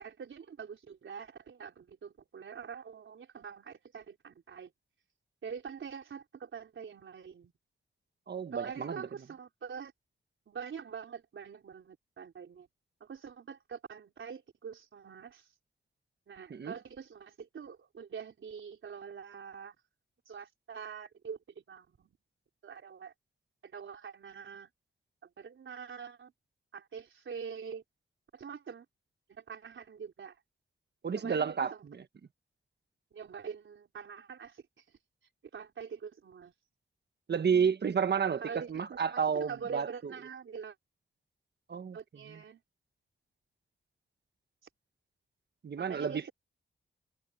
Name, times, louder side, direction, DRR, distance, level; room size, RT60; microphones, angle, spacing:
voice 1, 0.0-4.7 5.4-7.5 8.5-9.9 10.5-12.7 13.0-15.5 16.3-19.7 20.3-22.2 22.6-23.1 23.6-24.7 25.4-26.3 26.7-27.8 28.3-28.9 29.3-30.4 31.2-31.9 33.1-34.6 35.5-36.5 38.3-40.8 41.9-42.6 45.8-46.3, right 6 dB, 80° right, 4.1 m, -45 dB
voice 2, 8.3-9.1 16.5-16.7 31.0-32.0 37.3-40.1 41.7-42.0 42.3-42.4 45.6-46.2, right 6 dB, 60° right, 1.2 m, -31 dB
cardioid pair, 75°, 20 cm